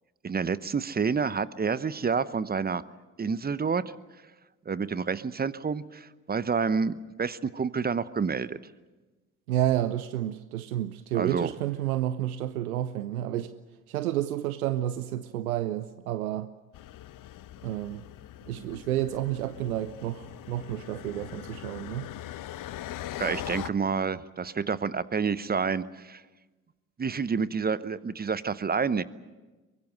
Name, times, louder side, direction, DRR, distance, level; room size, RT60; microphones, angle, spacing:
voice 1, 0.2-2.8 3.2-3.8 4.7-8.6 11.1-11.5 18.6-18.8 23.2-26.2 27.0-29.0, right 5 dB, 20° right, 0.9 m, -29 dB
voice 2, 9.5-13.6 13.9-16.5 17.6-18.0 18.5-22.1, right 12 dB, 85° right, 0.7 m, -30 dB
sound 1, 16.7-23.7, left 13 dB, 50° left, 0.9 m, -41 dB
23.5 x 22.0 x 7.9 m
hypercardioid pair, 55°, 43 cm